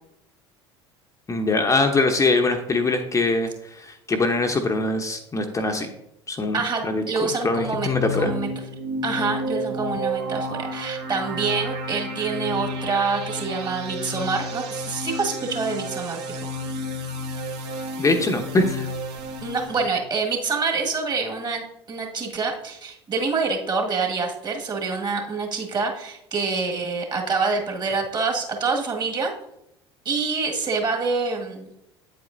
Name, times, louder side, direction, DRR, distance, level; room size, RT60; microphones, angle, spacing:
voice 1, 1.3-5.9 6.3-7.0 7.4-8.3 18.0-18.9, left 2 dB, 20° left, 4 dB, 0.9 m, -23 dB
voice 2, 6.5-8.5 9.0-16.4 19.4-29.3 30.1-31.7, right 4 dB, 30° right, 1 dB, 1.8 m, -26 dB
sound 1, 7.3-19.9, equal, 60° right, 1.6 m, -31 dB
9.1 x 7.8 x 2.6 m, 0.79 s
figure-of-eight pair, 70°, 15 cm